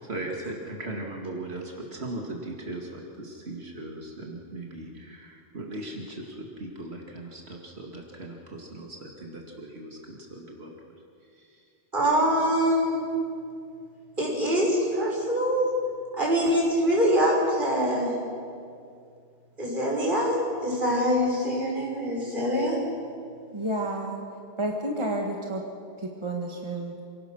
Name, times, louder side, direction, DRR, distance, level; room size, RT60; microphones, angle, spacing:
voice 1, 0.0-10.7 11.3-11.6, right 2 dB, 85° right, 0 dB, 2.5 m, -38 dB
voice 2, 11.9-13.0 14.2-15.7 16.2-18.1 19.6-22.8, equal, 50° right, -3 dB, 6.1 m, -24 dB
voice 3, 23.5-24.2 24.6-25.6 26.0-27.0, right 1 dB, 30° right, 1 dB, 1.8 m, -30 dB
28.0 x 18.0 x 6.4 m, 2.4 s
omnidirectional pair, 1.1 m